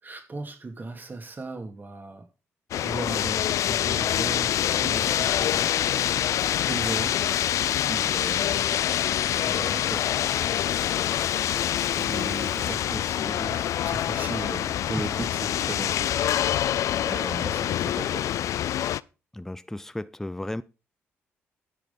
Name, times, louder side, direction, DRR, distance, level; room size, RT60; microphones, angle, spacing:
voice 1, 0.0-2.3 2.8-5.8 6.6-7.2 7.9-8.6 9.4-10.1 11.9-16.4 17.1-18.3, right 2 dB, 35° right, 2.7 m, -37 dB
sound 1, 2.7-19.0, left 11 dB, 70° left, 0.4 m, -26 dB
Tools, 4.8-12.8, left 4 dB, 45° left, 2.1 m, -44 dB
voice 2, 19.3-20.6, left 1 dB, 5° left, 0.6 m, -34 dB
10.5 x 6.6 x 5.5 m
supercardioid pair, 55°, 6 cm